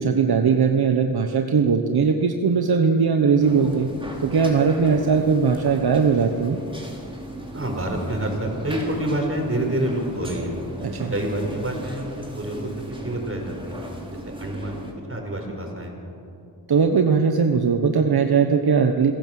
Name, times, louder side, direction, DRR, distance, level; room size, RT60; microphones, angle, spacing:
voice 1, 0.0-3.9 4.2-6.6 10.9-11.1 16.7-19.1, right 5 dB, 70° right, 5 dB, 1.2 m, -19 dB
sound 1, 3.4-14.9, equal, 15° right, 4.5 m, -37 dB
voice 2, 7.5-10.5 11.1-13.8 14.1-14.8 15.1-15.9, right 1 dB, 35° right, 2 dB, 5.7 m, -27 dB
27.0 x 16.0 x 7.7 m, 2.7 s
cardioid pair, 65°, 39 cm